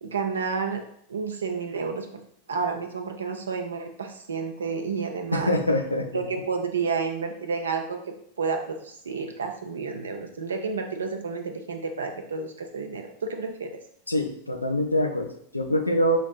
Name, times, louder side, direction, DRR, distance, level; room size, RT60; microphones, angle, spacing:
voice 1, 0.0-0.8 1.1-2.2 2.5-5.5 6.1-8.0 8.4-13.7, right 5 dB, 70° right, 5 dB, 0.5 m, -30 dB
voice 2, 5.3-6.1 14.1-16.2, equal, 85° left, 4 dB, 0.4 m, -24 dB
5.0 x 2.6 x 2.4 m, 0.68 s
figure-of-eight pair, 90°, 0 cm